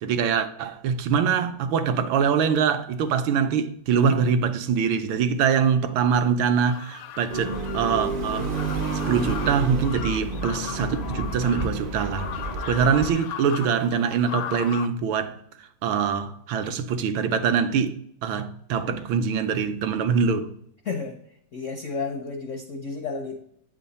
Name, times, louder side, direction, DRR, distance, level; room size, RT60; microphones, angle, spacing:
voice 1, 0.0-8.5 8.9-12.3 12.7-15.4 15.8-17.9 18.2-20.5, right 6 dB, 80° right, 1.4 m, -24 dB
sound 1, 6.5-14.9, left 10 dB, 90° left, 1.4 m, -38 dB
sound 2, 7.3-13.1, right 3 dB, 60° right, 0.5 m, -30 dB
voice 2, 20.8-21.2 21.5-23.4, left 4 dB, 70° left, 0.7 m, -31 dB
8.4 x 3.7 x 4.1 m
omnidirectional pair, 2.2 m